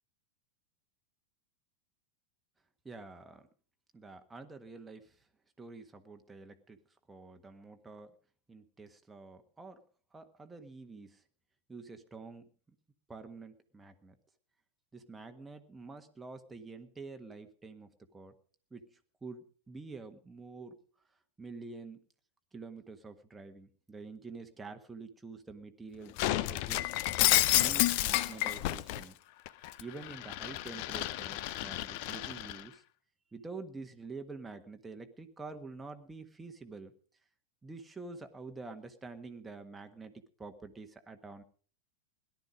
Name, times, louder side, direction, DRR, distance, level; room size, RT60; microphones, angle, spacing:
voice 1, 2.8-3.4 3.9-5.2 5.6-6.8 7.1-8.1 8.5-9.8 10.1-11.2 11.7-12.5 13.1-14.2 14.9-18.3 18.7-20.8 21.4-22.0 22.5-26.9 27.5-29.2 29.8-32.8 33.3-36.9 37.6-41.4, right 3 dB, 10° right, 6 dB, 1.5 m, -47 dB
Shatter, 26.2-29.0 29.5-32.6, left 16 dB, 45° left, 0.7 m, -30 dB
17.5 x 12.0 x 5.1 m, 0.42 s
figure-of-eight pair, 90°, 0 cm